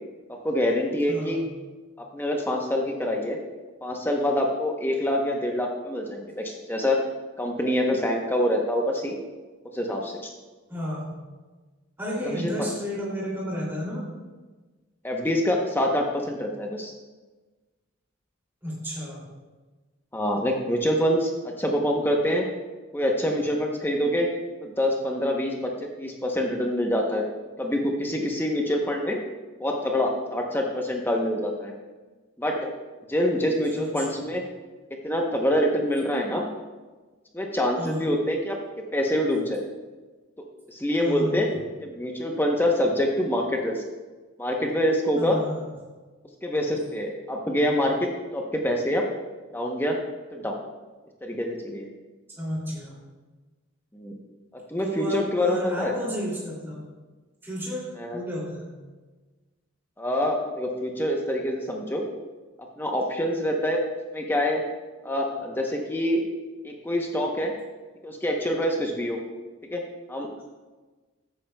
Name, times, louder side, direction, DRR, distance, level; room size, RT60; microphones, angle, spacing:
voice 1, 0.3-1.4 2.1-3.4 3.8-7.0 7.4-9.2 9.7-10.3 12.2-12.5 15.0-16.9 20.1-22.5 22.9-24.3 24.6-27.3 27.6-29.2 29.6-31.7 32.4-32.7 33.1-34.4 35.0-36.5 37.3-38.6 38.9-39.6 40.7-41.5 41.8-43.8 44.4-45.4 46.4-48.0 48.3-49.0 49.5-50.0 50.3-50.6 51.2-51.9 53.9-54.2 54.7-55.9 58.0-58.2 60.0-62.0 62.8-63.8 64.1-64.6 65.0-66.2 66.6-67.5 68.0-69.2 69.7-69.8 70.1-70.3, left 1 dB, 10° left, 1 dB, 0.8 m, -25 dB
voice 2, 1.1-1.5 10.7-11.1 12.0-14.1 18.6-19.2 33.7-34.0 37.8-38.1 41.0-41.6 45.2-45.7 52.4-52.9 54.8-56.8 57.4-58.7, equal, 10° right, -6 dB, 2.6 m, -32 dB
13.0 x 8.7 x 2.2 m, 1.3 s
head